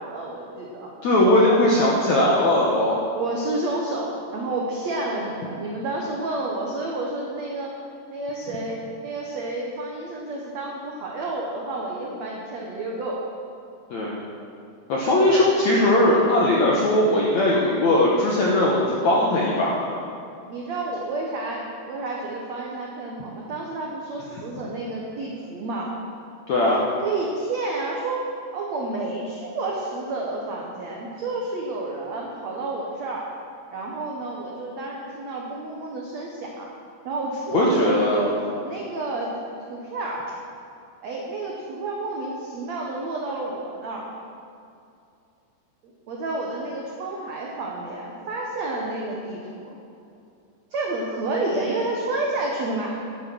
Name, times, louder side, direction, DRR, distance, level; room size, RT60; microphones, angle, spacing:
voice 1, 0.0-0.9 3.1-7.7 8.1-13.2 15.2-15.5 20.5-25.9 26.7-33.3 33.7-36.7 37.0-38.4 38.6-39.3 39.7-40.3 41.0-44.1 45.8-49.8 50.7-53.0, right 2 dB, 85° right, -2 dB, 1.5 m, -30 dB
voice 2, 1.0-3.0 13.9-14.2 14.9-20.0 26.5-26.8 37.5-38.2, left 1 dB, 70° left, -4 dB, 1.8 m, -19 dB
12.0 x 9.3 x 6.2 m, 2.5 s
omnidirectional pair, 4.9 m